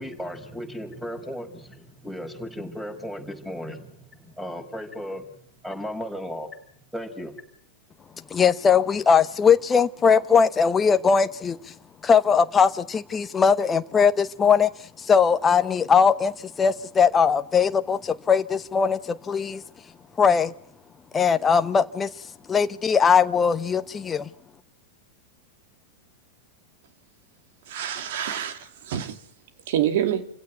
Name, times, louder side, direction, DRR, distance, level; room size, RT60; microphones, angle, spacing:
voice 1, 0.0-5.3 5.6-6.5 6.9-7.3, equal, 5° right, 5.2 m, -35 dB
voice 2, 8.3-11.7 12.0-14.7 15.0-19.6 20.2-20.5 21.1-22.1 22.5-24.3, left 6 dB, 20° left, 1.0 m, -20 dB
voice 3, 27.7-29.1 29.7-30.2, right 10 dB, 55° right, 2.6 m, -26 dB
28.5 x 16.5 x 9.4 m
figure-of-eight pair, 90°, 0 cm